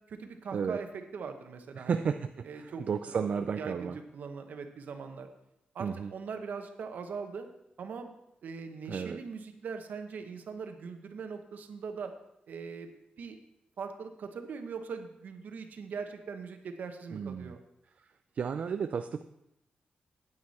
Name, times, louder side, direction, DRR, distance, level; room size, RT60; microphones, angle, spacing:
voice 1, 0.1-2.0 2.4-5.3 5.7-7.5 7.8-8.1 8.4-12.1 12.5-13.4 13.8-17.6, right 5 dB, 65° right, 6 dB, 1.0 m, -41 dB
voice 2, 1.8-4.0 5.8-6.1 8.9-9.2 17.1-17.5 18.4-19.2, right 6 dB, 50° right, 8 dB, 0.4 m, -33 dB
9.6 x 9.0 x 4.2 m, 0.84 s
wide cardioid pair, 175°, 3 cm